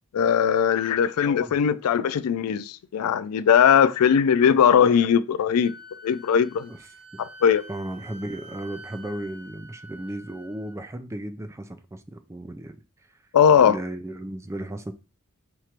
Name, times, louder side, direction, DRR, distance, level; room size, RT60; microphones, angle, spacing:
voice 1, 0.1-5.7 6.0-6.7 7.4-7.6 13.3-13.8, left 7 dB, 90° left, 0.4 m, -19 dB
Wind instrument woodwind instrument, 5.6-10.8, equal, 80° right, 1.5 m, -47 dB
voice 2, 7.7-12.8 13.6-14.9, right 1 dB, 15° right, 0.3 m, -35 dB
4.5 x 2.5 x 4.4 m
head